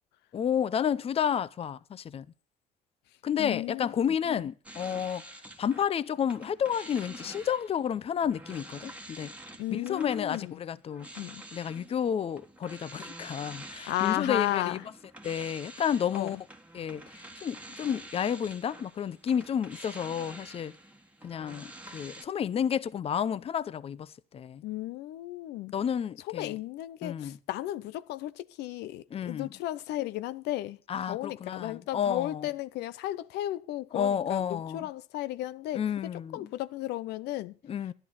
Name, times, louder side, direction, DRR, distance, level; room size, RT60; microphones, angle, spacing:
voice 1, 0.3-2.3 3.2-5.3 5.6-9.3 9.7-11.1 11.5-14.8 15.2-16.4 16.7-20.8 21.2-24.6 25.7-26.6 27.0-27.4 29.1-29.5 30.9-32.5 33.9-34.9 35.7-36.5 37.6-37.9, left 8 dB, 35° left, 0.6 m, -31 dB
voice 2, 3.4-3.9 4.3-4.4 9.6-10.5 11.2-11.4 13.9-14.8 16.1-16.3 24.6-25.7 26.3-30.8 31.0-35.8 36.3-37.5, left 15 dB, 80° left, 0.6 m, -34 dB
sound 1, 4.6-5.9 6.2-22.2, right 1 dB, 10° right, 1.5 m, -47 dB
11.5 x 11.0 x 5.7 m
cardioid pair, 110°, 17 cm